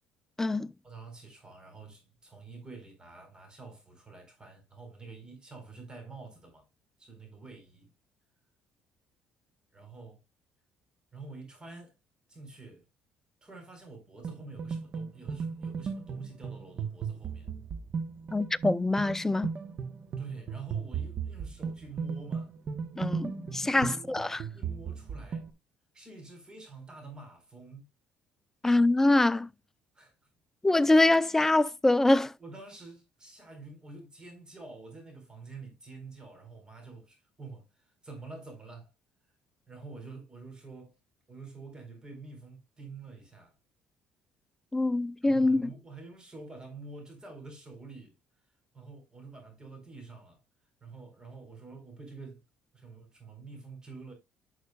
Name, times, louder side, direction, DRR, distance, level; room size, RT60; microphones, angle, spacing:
voice 1, 0.8-6.7 7.0-7.9 9.7-10.2 11.1-12.0 12.3-12.8 13.4-17.5 20.2-22.5 23.7-24.2 24.5-25.5 25.9-27.9 29.9-30.1 32.4-38.9 39.7-41.0 41.3-43.5 45.2-48.1 48.7-50.4 50.8-52.4 52.7-54.1, right 3 dB, 25° right, 4.3 m, -47 dB
sound 1, 14.2-25.5, right 6 dB, 50° right, 1.1 m, -36 dB
voice 2, 18.3-19.5 23.0-24.4 28.6-29.5 30.6-32.3 44.7-45.7, left 2 dB, 10° left, 0.4 m, -24 dB
11.0 x 6.3 x 2.3 m
cardioid pair, 95°, 4 cm